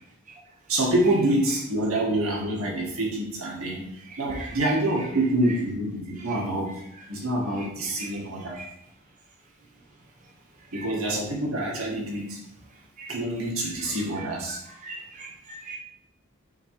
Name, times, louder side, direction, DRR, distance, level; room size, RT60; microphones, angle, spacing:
voice 1, 0.7-6.7 7.1-8.6 10.7-12.4 13.1-14.6, right 1 dB, 85° right, -3 dB, 2.0 m, -26 dB
voice 2, 14.5-15.8, right 3 dB, 35° right, -2 dB, 0.9 m, -40 dB
7.0 x 3.1 x 4.9 m, 0.76 s
head